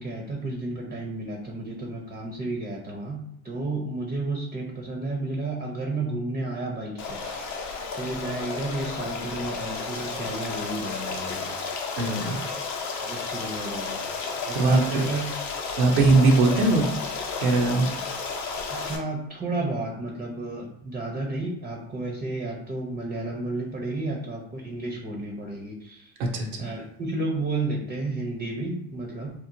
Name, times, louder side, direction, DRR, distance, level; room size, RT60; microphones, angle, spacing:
voice 1, 0.0-3.2 3.4-7.4 8.0-11.5 13.0-14.0 14.5-15.3 18.7-26.1 26.6-29.3, right 2 dB, 20° right, 0 dB, 0.5 m, -32 dB
Stream, 7.0-19.0, left 4 dB, 40° left, 0.7 m, -32 dB
voice 2, 12.0-12.4 14.5-14.8 15.8-16.9 17.4-17.9 26.2-26.7, right 3 dB, 85° right, 1 dB, 0.7 m, -20 dB
3.0 x 2.0 x 2.5 m, 0.73 s
hypercardioid pair, 75°, 42 cm